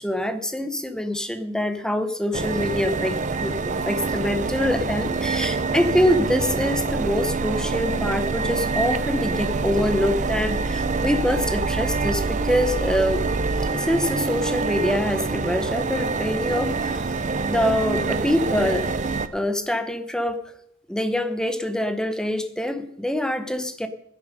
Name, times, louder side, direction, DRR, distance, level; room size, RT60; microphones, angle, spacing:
voice 1, 0.0-13.2 13.7-17.1 17.5-18.9 19.3-20.4 20.9-23.9, left 1 dB, 5° left, 9 dB, 0.9 m, -25 dB
sound 1, 2.3-19.3, right 4 dB, 35° right, 0.6 m, -26 dB
Alarm, 8.4-8.9 9.4-9.9 10.4-10.9 11.4-11.9 12.4-12.9, left 4 dB, 55° left, 6.0 m, -47 dB
16.5 x 10.0 x 5.3 m, 0.76 s
head